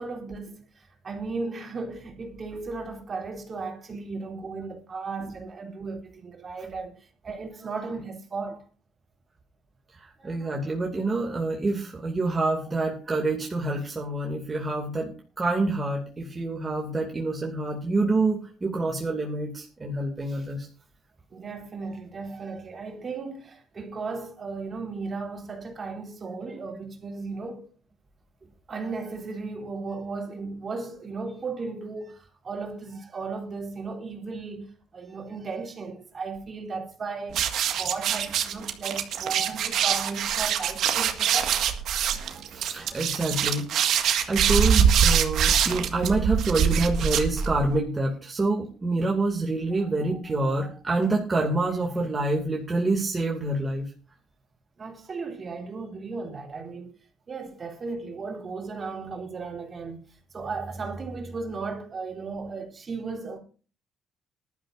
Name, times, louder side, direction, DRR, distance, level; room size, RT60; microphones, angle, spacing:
voice 1, 0.0-8.6 21.3-27.7 28.7-41.6 49.8-50.4 54.8-56.9 57.3-60.0 60.3-63.4, right 4 dB, 40° right, 3.7 m, -35 dB
voice 2, 9.9-20.7 42.2-43.9 44.3-53.9, right 2 dB, 25° right, 2.6 m, -27 dB
sound 1, 37.3-47.8, right 8 dB, 70° right, 1.8 m, -24 dB
19.5 x 12.0 x 2.7 m
cardioid pair, 95°, 0 cm